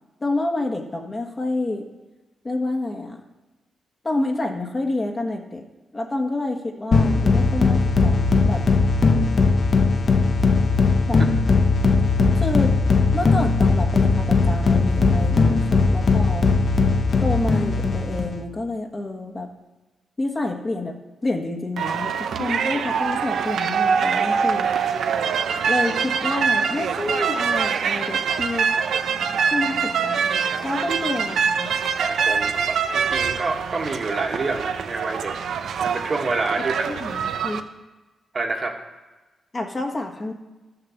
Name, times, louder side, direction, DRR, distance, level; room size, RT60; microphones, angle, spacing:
voice 1, 0.2-1.9 2.4-3.2 4.0-5.7 5.9-8.6 11.1-11.2 12.3-12.7 13.1-16.5 17.2-19.5 20.2-24.7 25.6-28.7 29.5-30.3 30.6-31.7 36.9-37.6 39.5-40.3, left 2 dB, 25° left, 2 dB, 1.5 m, -28 dB
sound 1, 6.9-18.4, left 4 dB, 45° left, 0.9 m, -19 dB
sound 2, 21.8-37.6, right 6 dB, 80° right, 0.8 m, -24 dB
voice 2, 32.0-35.3 35.8-36.9 38.3-38.8, right 3 dB, 35° right, 2 dB, 1.7 m, -27 dB
13.0 x 6.8 x 7.2 m, 1.2 s
wide cardioid pair, 130°, 0 cm